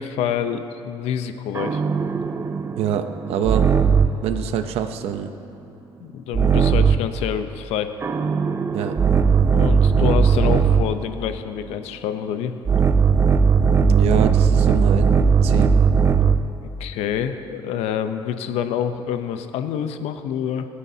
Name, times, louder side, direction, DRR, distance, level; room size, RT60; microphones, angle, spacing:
voice 1, 0.0-1.8 6.0-7.9 9.5-12.5 16.6-20.7, left 9 dB, 85° left, 9 dB, 0.7 m, -27 dB
sound 1, 1.6-4.3 6.3-7.2 8.0-11.0 12.7-16.5, right 6 dB, 25° right, 0.5 m, -18 dB
voice 2, 2.8-3.7 4.2-5.3 8.7-9.0 13.8-15.7, right 9 dB, 80° right, 7 dB, 0.8 m, -25 dB
28.5 x 9.7 x 2.8 m, 2.8 s
cardioid pair, 110°, 10 cm